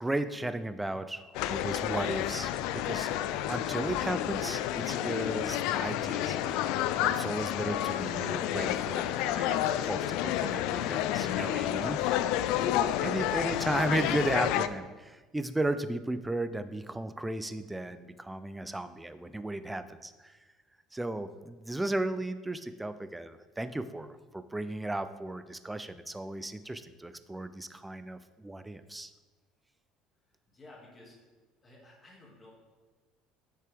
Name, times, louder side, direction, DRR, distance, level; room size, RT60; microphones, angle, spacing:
voice 1, 0.0-3.1 3.5-6.6 7.0-12.2 12.6-20.4 20.9-29.1, right 1 dB, 5° right, 11 dB, 0.4 m, -35 dB
sound 1, 1.3-14.7, left 12 dB, 75° left, 0.3 m, -30 dB
voice 2, 30.5-31.2 31.6-32.5, left 2 dB, 20° left, -3 dB, 2.1 m, -54 dB
7.5 x 6.7 x 3.5 m, 1.3 s
cardioid pair, 130°, 0 cm